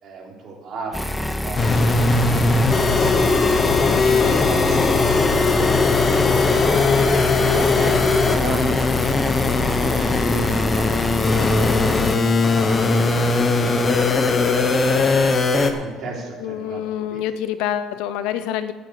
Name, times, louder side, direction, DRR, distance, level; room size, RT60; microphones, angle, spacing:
voice 1, 0.0-5.7 6.3-8.9 9.4-10.9 11.5-12.8 13.4-14.5 15.6-17.3, right 4 dB, 50° right, -2 dB, 3.5 m, -36 dB
sound 1, 0.9-12.2, left 1 dB, 5° left, 0.6 m, -27 dB
sound 2, 1.6-15.7, left 3 dB, 25° left, 1.1 m, -19 dB
voice 2, 4.0-4.5 16.4-18.7, left 10 dB, 85° left, 12 dB, 0.8 m, -27 dB
9.5 x 7.8 x 8.6 m, 1.4 s
cardioid pair, 130°, 0 cm